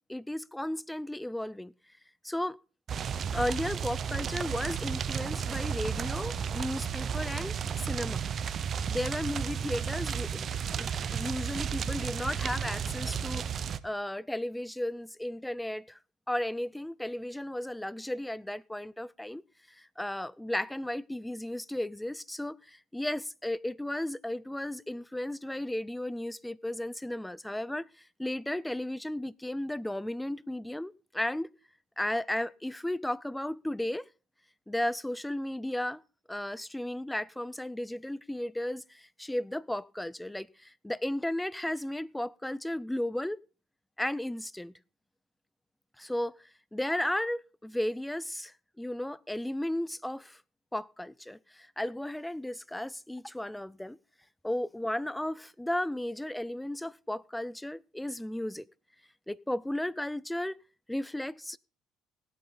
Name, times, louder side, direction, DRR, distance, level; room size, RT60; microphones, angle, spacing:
voice 1, 0.1-1.7 2.2-2.6 3.3-8.2 8.9-16.0 16.3-19.4 19.8-27.9 28.2-31.5 32.0-34.0 34.7-36.0 36.3-43.4 44.0-44.7 46.0-46.3 46.7-50.4 50.7-54.0 54.4-58.6 59.3-60.6 60.9-61.6, left 1 dB, 5° left, 0.5 m, -34 dB
sound 1, 2.9-13.8, right 7 dB, 50° right, 0.8 m, -33 dB
18.0 x 8.6 x 3.9 m
supercardioid pair, 85°, 0 cm